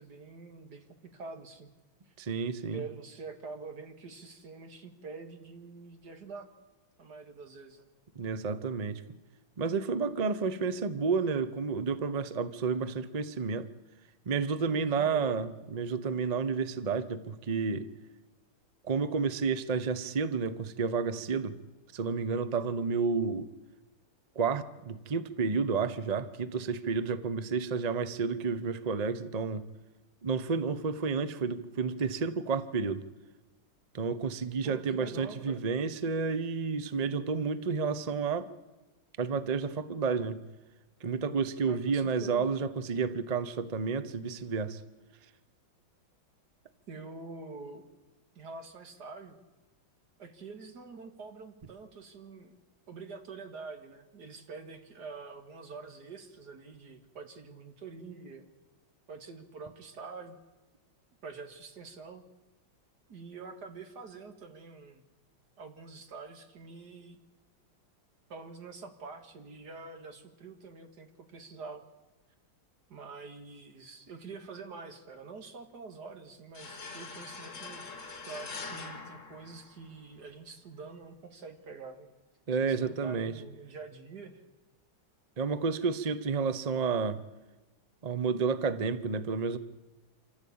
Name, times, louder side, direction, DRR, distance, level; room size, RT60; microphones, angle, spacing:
voice 1, 0.0-1.7 2.1-2.2 2.7-6.5 7.0-7.9 14.7-15.4 34.6-35.6 41.7-42.5 46.9-47.8 48.4-49.4 50.2-52.6 52.9-58.5 59.1-60.4 61.2-62.2 63.1-65.0 65.6-67.2 68.3-71.8 72.9-77.9 78.2-82.1 82.6-84.4, right 4 dB, 55° right, 2.4 m, -46 dB
voice 2, 2.2-2.8 8.2-9.0 9.6-13.7 14.3-17.9 18.8-21.6 21.9-23.5 24.4-29.6 30.2-33.0 33.9-38.5 39.2-40.4 41.0-44.8 82.5-83.3 85.4-87.2 88.0-89.6, right 5 dB, 85° right, 0.3 m, -31 dB
sound 1, 76.5-80.1, left 4 dB, 40° left, 2.1 m, -43 dB
26.0 x 15.0 x 8.6 m
omnidirectional pair, 2.2 m